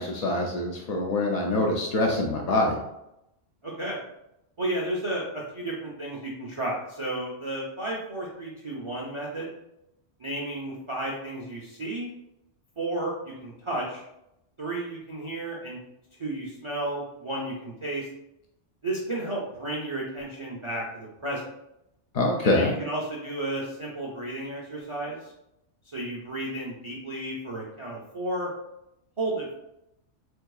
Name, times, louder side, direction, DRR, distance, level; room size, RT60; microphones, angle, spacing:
voice 1, 0.0-2.8 22.1-22.7, left 2 dB, 70° left, 0 dB, 0.3 m, -25 dB
voice 2, 3.6-4.0 4.6-9.5 10.2-12.1 12.8-14.0 14.6-15.8 16.2-18.1 18.8-21.4 22.4-25.3 25.9-28.5 29.2-29.5, right 1 dB, 40° right, -5 dB, 0.4 m, -32 dB
4.5 x 2.6 x 2.3 m, 0.84 s
omnidirectional pair, 1.2 m